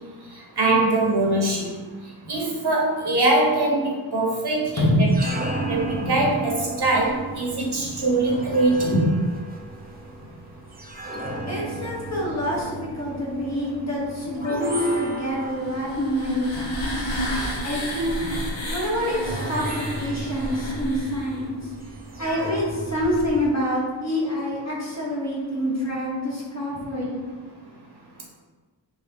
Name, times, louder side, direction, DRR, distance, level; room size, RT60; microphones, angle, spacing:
voice 1, 0.6-1.7 2.3-4.9 5.7-9.0, right 2 dB, 60° right, -2 dB, 0.7 m, -22 dB
voice 2, 4.7-5.5 6.0-6.2 8.8-9.1 11.5-17.1 17.6-18.3 18.7-21.6 22.2-27.2, equal, 35° left, -4 dB, 0.9 m, -26 dB
sound 1, 4.9-23.5, right 2 dB, 20° right, 0.4 m, -35 dB
sound 2, 15.6-21.4, equal, 85° left, 0.7 m, -31 dB
2.9 x 2.2 x 3.3 m, 1.4 s
wide cardioid pair, 40°, 45 cm